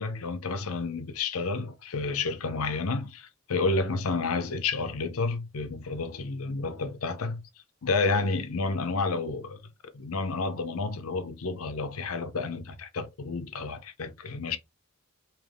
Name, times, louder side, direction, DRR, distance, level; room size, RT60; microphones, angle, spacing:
voice 1, 0.0-7.5 7.8-9.6 9.9-14.6, left 3 dB, 80° left, 0.7 m, -30 dB
3.4 x 3.0 x 3.5 m
head